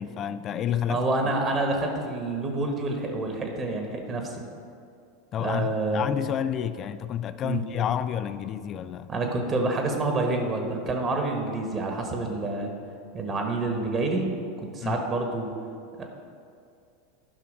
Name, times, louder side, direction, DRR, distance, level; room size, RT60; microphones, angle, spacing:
voice 1, 0.0-1.0 5.3-9.1 14.8-15.0, left 9 dB, 35° left, 13 dB, 0.4 m, -29 dB
voice 2, 0.8-4.4 5.4-6.1 7.4-7.6 9.1-12.7 13.1-14.3 14.6-15.5 16.0-16.1, right 2 dB, 30° right, 3 dB, 1.4 m, -28 dB
11.5 x 5.7 x 5.1 m, 2.4 s
figure-of-eight pair, 85°, 0 cm